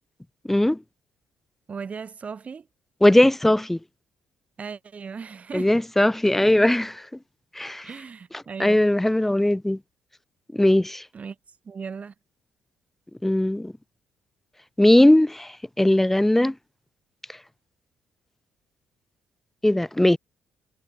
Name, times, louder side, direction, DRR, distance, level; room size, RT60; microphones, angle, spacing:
voice 1, 0.5-0.8 3.0-3.8 5.5-7.1 7.5-7.9 8.3-9.8 10.5-11.0 13.2-13.7 14.8-16.5 19.6-20.2, left 1 dB, 5° left, 0.4 m, -19 dB
voice 2, 1.7-2.6 4.6-5.7 7.8-8.9 11.1-11.3 11.6-12.1, right 5 dB, 40° right, 1.7 m, -37 dB
supercardioid pair, 70°, 4 cm